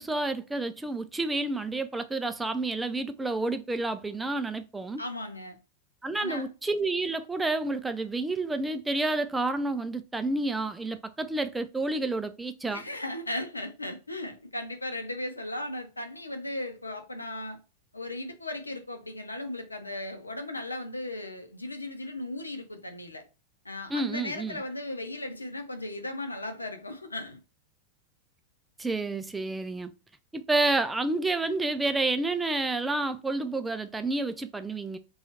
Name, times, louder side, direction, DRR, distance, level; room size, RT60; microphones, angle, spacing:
voice 1, 0.0-5.0 6.0-12.8 23.9-24.6 28.8-29.9 30.3-35.0, right 2 dB, 10° right, 0.3 m, -29 dB
voice 2, 5.0-5.6 6.2-6.5 12.7-17.6 17.9-23.2 23.6-27.4, left 1 dB, 80° left, 0.6 m, -36 dB
2.8 x 2.3 x 4.1 m
figure-of-eight pair, 90°, 0 cm